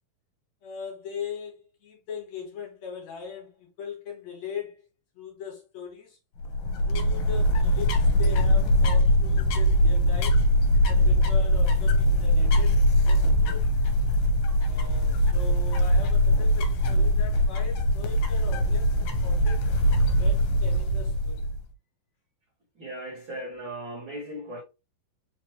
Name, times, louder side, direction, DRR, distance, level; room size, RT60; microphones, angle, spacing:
voice 1, 0.6-4.9 5.2-6.2 6.8-10.5 10.8-13.8 14.7-19.7 20.2-21.5, left 6 dB, 60° left, 2.3 m, -40 dB
sound 1, 6.4-21.6, equal, 80° left, 2.2 m, -22 dB
voice 2, 22.7-24.6, right 1 dB, 75° right, 1.1 m, -37 dB
5.1 x 2.9 x 3.0 m
omnidirectional pair, 3.8 m